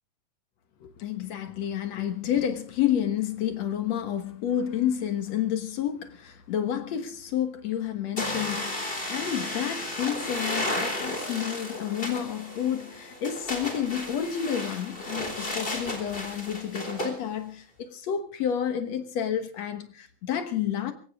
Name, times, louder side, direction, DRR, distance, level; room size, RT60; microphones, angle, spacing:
voice 1, 0.8-20.9, left 9 dB, 60° left, 2.0 m, -30 dB
sound 1, 8.2-17.1, left 1 dB, 15° left, 3.5 m, -33 dB
22.0 x 17.0 x 3.6 m
omnidirectional pair, 4.4 m